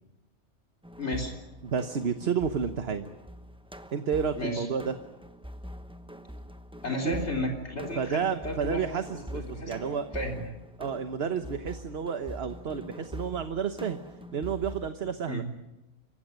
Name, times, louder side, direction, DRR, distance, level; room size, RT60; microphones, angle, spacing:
sound 1, 0.8-14.9, equal, 5° right, 0.9 m, -44 dB
voice 1, 1.0-1.3 4.3-4.7 6.8-9.0 9.3-10.4 15.3-15.5, left 1 dB, 65° left, 1 dB, 3.9 m, -33 dB
voice 2, 1.6-3.1 3.9-4.9 7.0-7.3 7.9-10.1 10.8-14.0 14.3-15.4, right 6 dB, 55° right, 9 dB, 1.3 m, -31 dB
27.0 x 15.5 x 9.4 m, 1.0 s
omnidirectional pair, 1.3 m